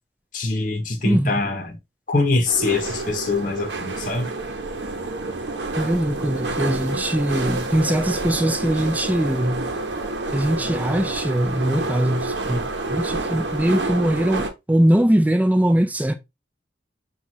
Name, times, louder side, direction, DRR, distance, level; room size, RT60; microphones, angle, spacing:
voice 1, 0.3-1.8 2.1-4.3, left 3 dB, 50° left, 0.9 m, -23 dB
voice 2, 1.0-1.4 5.7-9.7 10.3-16.1, right 1 dB, 10° right, 0.5 m, -21 dB
sound 1, 2.5-14.5, right 2 dB, 80° right, 0.8 m, -28 dB
5.8 x 2.4 x 3.0 m
head